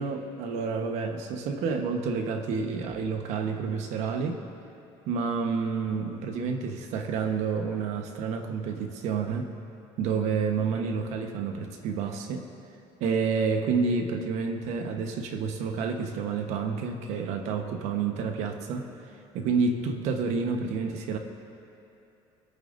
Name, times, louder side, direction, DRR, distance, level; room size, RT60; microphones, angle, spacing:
voice 1, 0.0-4.4 5.1-9.5 10.0-12.5 13.0-18.9 19.3-21.2, right 5 dB, 75° right, 5 dB, 1.2 m, -29 dB
24.5 x 9.1 x 2.6 m, 2.8 s
cardioid pair, 135°, 12 cm